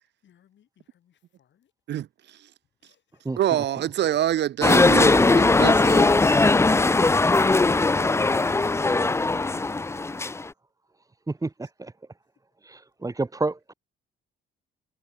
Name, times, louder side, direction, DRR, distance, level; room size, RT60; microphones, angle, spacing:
voice 1, 0.2-1.7 2.8-3.2 13.0-13.1, left 10 dB, 65° left, 7.8 m, -60 dB
voice 2, 1.9-2.5 3.4-6.1, right 12 dB, 60° right, 0.7 m, -26 dB
sound 1, 4.6-10.5, left 3 dB, 15° left, 0.5 m, -19 dB
voice 3, 11.3-11.9 12.6-13.7, right 3 dB, 15° right, 1.3 m, -30 dB
cardioid pair, 90°, 20 cm